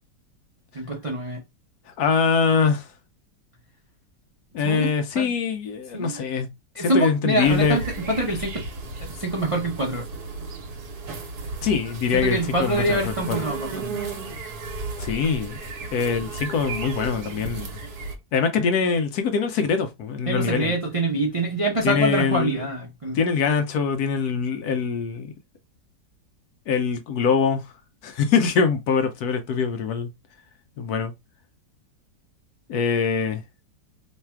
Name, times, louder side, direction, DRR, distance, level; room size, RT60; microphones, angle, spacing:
voice 1, 0.7-1.4 4.6-4.9 5.2-5.3 5.9-6.2 6.7-8.6 9.0-10.1 12.1-14.0 20.3-23.2, right 1 dB, 50° right, 0.4 m, -25 dB
voice 2, 2.0-2.9 4.5-6.5 6.8-7.8 11.6-13.4 15.0-15.6 15.9-17.8 18.3-20.7 21.8-22.6 23.1-25.3 26.7-27.6 28.0-30.1 30.8-31.1 32.7-33.4, left 5 dB, 70° left, 1.0 m, -23 dB
sound 1, 7.4-18.2, right 3 dB, 65° right, 1.4 m, -34 dB
3.2 x 2.3 x 4.4 m
omnidirectional pair, 1.9 m